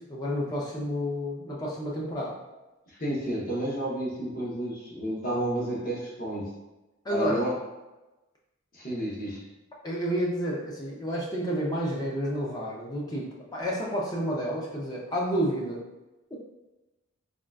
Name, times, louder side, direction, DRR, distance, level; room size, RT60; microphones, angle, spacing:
voice 1, 0.0-2.4 7.0-7.4 9.8-15.8 16.3-16.4, equal, 20° left, -3 dB, 0.4 m, -30 dB
voice 2, 2.9-6.5 7.1-7.5 8.7-9.4, right 1 dB, 40° left, -5 dB, 0.8 m, -31 dB
3.7 x 2.3 x 2.3 m, 1.1 s
head